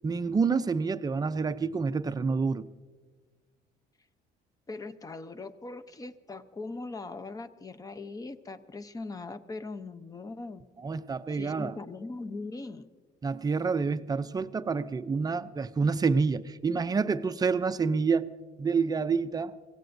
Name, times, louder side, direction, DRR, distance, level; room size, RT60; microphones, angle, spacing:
voice 1, 0.0-2.6 10.8-11.8 13.2-19.6, right 5 dB, 20° right, 0.5 m, -28 dB
voice 2, 4.7-10.6 11.3-12.9, left 3 dB, 20° left, 0.7 m, -40 dB
24.5 x 17.0 x 2.6 m
cardioid pair, 110°, 17 cm